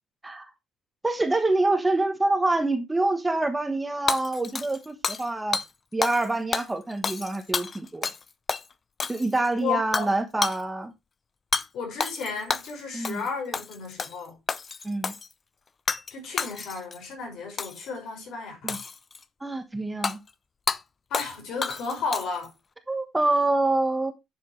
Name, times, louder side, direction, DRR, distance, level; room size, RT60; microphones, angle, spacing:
voice 1, 1.0-5.6 5.9-8.1 9.1-10.9 12.9-13.2 14.8-15.1 18.6-18.8 19.4-20.2 22.9-24.1, right 2 dB, 10° right, 1.3 m, -26 dB
Hammer / Shatter, 4.1-5.3 5.5-5.7 6.0-6.3 6.5-8.2 8.5-8.6 9.0-9.5 9.9-10.1 10.4-10.6 11.5-11.7 12.0-12.7 13.0-13.3 13.5-14.2 14.5-15.3 15.9-16.1 16.4-17.0 17.6-17.9 18.7-19.2 20.0-20.2 20.7-20.8 21.1-21.3 21.6-22.5, left 5 dB, 25° left, 0.5 m, -29 dB
voice 2, 9.6-10.1 11.7-14.4 16.1-18.8 21.1-22.5, left 5 dB, 65° left, 5.8 m, -33 dB
11.0 x 7.0 x 3.2 m
cardioid pair, 150°, 0 cm